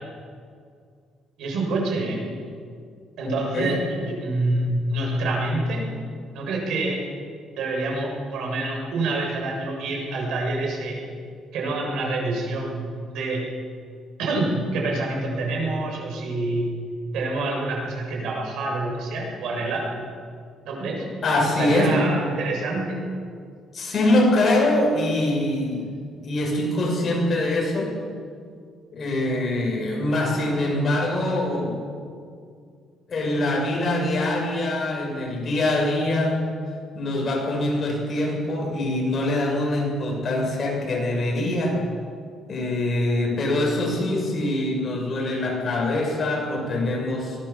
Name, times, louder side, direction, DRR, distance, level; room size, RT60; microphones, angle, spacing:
voice 1, 1.4-2.2 3.2-5.9 6.3-7.0 7.6-11.0 11.5-13.5 14.2-16.6 17.1-19.9 20.6-21.0 21.6-23.0, right 2 dB, 70° right, 0 dB, 7.5 m, -27 dB
voice 2, 3.2-3.7 21.2-21.9 23.7-25.9 26.2-27.9 28.9-31.8 33.1-36.5 36.9-41.8 42.5-47.4, left 1 dB, 35° left, -1 dB, 6.6 m, -24 dB
23.0 x 19.0 x 7.3 m, 2.2 s
cardioid pair, 160°, 0 cm